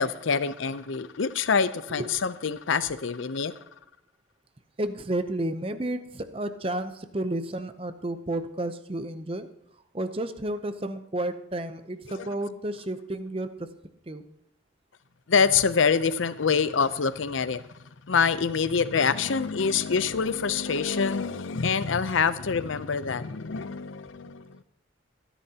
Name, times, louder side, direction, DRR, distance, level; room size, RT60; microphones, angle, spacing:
voice 1, 0.0-3.5 12.2-12.3 15.3-17.7 18.1-24.6, left 5 dB, 80° left, 0.6 m, -25 dB
voice 2, 4.8-9.5 9.9-13.7 14.1-14.2 20.0-20.1, right 1 dB, 30° right, 0.7 m, -31 dB
25.0 x 10.0 x 2.9 m
head